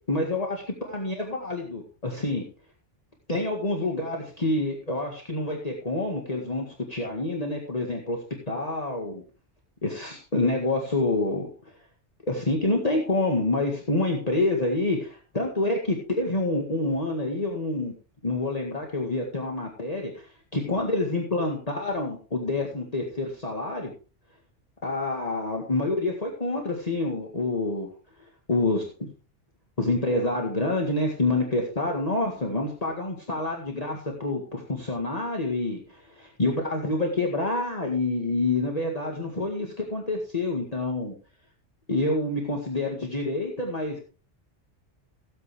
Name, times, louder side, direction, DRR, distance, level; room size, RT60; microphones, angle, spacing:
voice 1, 0.1-2.4 3.3-8.2 8.5-9.2 9.8-11.5 12.2-17.9 18.2-20.3 20.5-23.9 24.8-27.9 28.2-29.1 29.8-41.1 41.9-44.0, left 2 dB, 35° left, 0 dB, 2.0 m, -27 dB
17.5 x 8.3 x 3.4 m, 0.36 s
omnidirectional pair, 1.2 m